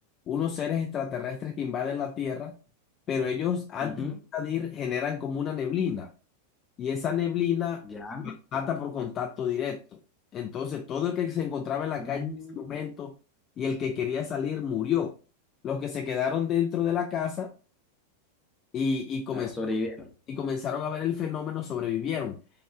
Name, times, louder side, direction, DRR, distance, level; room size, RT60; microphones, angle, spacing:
voice 1, 0.3-2.5 3.1-6.1 6.8-7.8 8.2-9.8 10.3-12.2 12.6-13.1 13.6-15.1 15.6-17.5 18.7-19.5 20.3-22.4, left 8 dB, 30° left, 4 dB, 0.3 m, -30 dB
voice 2, 3.8-4.2 7.8-8.4 12.0-12.8 19.3-20.1, left 3 dB, 15° left, 4 dB, 0.7 m, -34 dB
3.7 x 3.0 x 2.3 m, 0.35 s
figure-of-eight pair, 90°, 0 cm